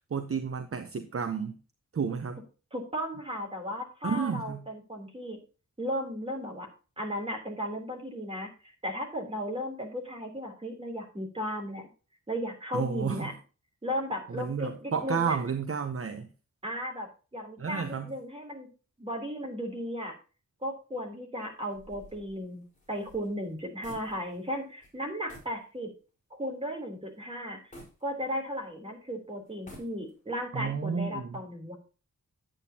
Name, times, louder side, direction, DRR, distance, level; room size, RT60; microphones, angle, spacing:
voice 1, 0.1-1.6 1.9-2.4 4.0-4.6 12.7-13.3 14.3-16.3 17.6-18.1 30.5-31.4, right 6 dB, 45° right, 8 dB, 0.8 m, -31 dB
voice 2, 2.7-5.4 5.8-6.7 7.0-11.9 12.3-13.3 13.8-15.4 16.6-18.7 19.0-20.1 20.6-25.9 26.3-27.6 28.0-31.7, equal, 20° right, 1 dB, 3.3 m, -35 dB
sound 1, 21.7-24.5 24.8-25.0 25.3-25.6 26.1-26.2 27.7-28.7 29.5-30.3, left 1 dB, 25° left, 4.5 m, -51 dB
10.0 x 8.9 x 2.8 m, 0.35 s
wide cardioid pair, 150°, 31 cm